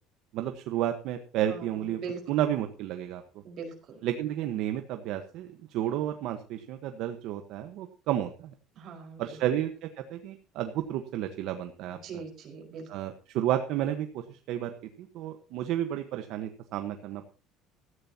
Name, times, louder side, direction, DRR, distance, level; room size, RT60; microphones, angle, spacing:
voice 1, 0.3-2.0 2.3-3.2 4.0-8.5 9.2-12.0 12.9-17.3, right 11 dB, 60° right, 7 dB, 1.3 m, -31 dB
voice 2, 3.4-4.0 8.7-9.4 12.0-12.9, right 5 dB, 40° right, 2 dB, 4.9 m, -41 dB
16.5 x 14.5 x 2.9 m, 0.38 s
cardioid pair, 170°, 0 cm